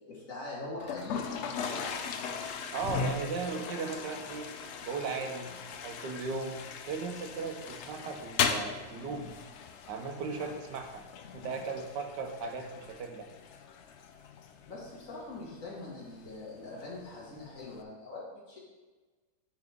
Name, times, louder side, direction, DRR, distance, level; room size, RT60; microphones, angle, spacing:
voice 1, 0.1-2.0 14.7-18.6, left 2 dB, 50° left, -5 dB, 2.2 m, -43 dB
Toilet flush, 0.8-17.8, left 6 dB, 85° left, 0.6 m, -39 dB
voice 2, 2.7-4.5 4.8-5.5 5.8-6.6 6.9-9.3 9.9-11.0 11.3-13.3, right 4 dB, 80° right, 4 dB, 1.5 m, -37 dB
9.3 x 4.9 x 3.6 m, 1.3 s
omnidirectional pair, 1.9 m